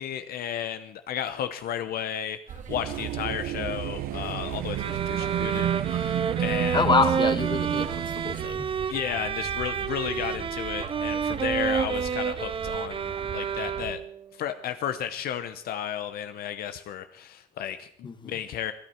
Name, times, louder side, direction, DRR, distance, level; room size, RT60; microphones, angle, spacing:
voice 1, 0.0-6.9 8.9-14.0 14.4-18.7, left 10 dB, 65° left, 10 dB, 0.8 m, -33 dB
sound 1, 2.5-13.9, right 7 dB, 45° right, 1.9 m, -41 dB
sound 2, 2.7-8.5, right 12 dB, 65° right, 0.5 m, -31 dB
sound 3, 4.8-14.2, right 7 dB, 30° right, 0.7 m, -29 dB
voice 2, 6.7-8.6 18.0-18.3, left 5 dB, 25° left, 9 dB, 1.5 m, -26 dB
21.5 x 11.0 x 4.4 m, 0.69 s
cardioid pair, 110°, 17 cm